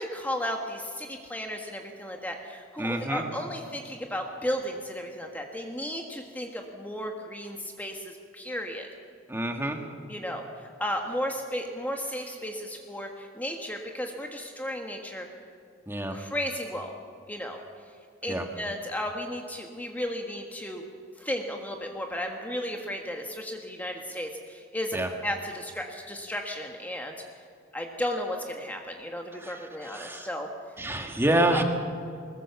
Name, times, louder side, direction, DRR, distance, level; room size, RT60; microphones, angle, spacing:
voice 1, 0.0-8.9 10.1-15.3 16.1-16.9 17.3-17.6 18.2-20.8 21.2-25.0 25.2-27.1 27.7-30.5 31.5-31.6, equal, 10° left, 2 dB, 1.5 m, -34 dB
voice 2, 2.8-3.2 9.3-9.8 15.9-16.2 18.3-18.4 24.9-25.1 29.4-29.5 29.8-30.3 30.8-31.6, right 1 dB, 10° right, 3 dB, 1.7 m, -27 dB
21.0 x 20.5 x 7.1 m, 2.3 s
head